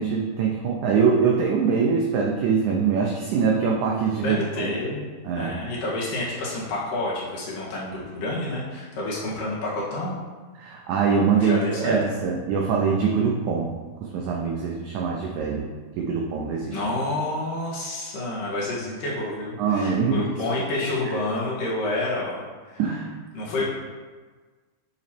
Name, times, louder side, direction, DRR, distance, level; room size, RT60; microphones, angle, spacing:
voice 1, 0.0-4.7 5.2-5.5 10.6-13.7 14.0-15.7 16.0-16.8 19.6-20.3 22.8-23.2, right 5 dB, 90° right, -1 dB, 1.7 m, -23 dB
voice 2, 4.2-5.0 5.4-10.2 11.4-12.0 16.7-22.8 23.3-23.6, left 2 dB, 65° left, -6 dB, 2.9 m, -29 dB
8.9 x 3.1 x 4.3 m, 1.4 s
omnidirectional pair, 4.3 m